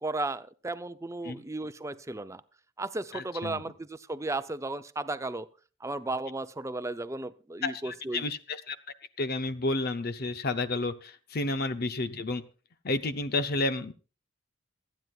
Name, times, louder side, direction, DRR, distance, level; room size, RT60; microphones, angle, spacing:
voice 1, 0.0-2.4 2.8-5.5 5.8-8.2, right 2 dB, 15° right, 12 dB, 0.6 m, -34 dB
voice 2, 3.1-3.6 7.6-8.8 9.2-12.4 12.8-13.9, left 2 dB, 50° left, 11 dB, 0.7 m, -31 dB
27.5 x 9.5 x 2.4 m, 0.35 s
head